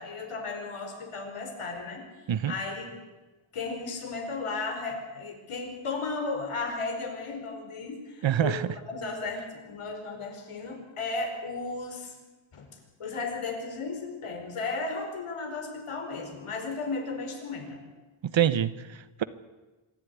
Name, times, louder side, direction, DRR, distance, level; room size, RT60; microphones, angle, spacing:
voice 1, 0.0-2.1 2.5-3.0 3.5-12.1 12.5-12.7 13.0-17.8, left 3 dB, 85° left, 3 dB, 5.0 m, -35 dB
voice 2, 8.2-8.7 18.2-19.2, right 10 dB, 65° right, 15 dB, 1.1 m, -26 dB
25.5 x 11.5 x 9.7 m, 1.2 s
wide cardioid pair, 155°, 50 cm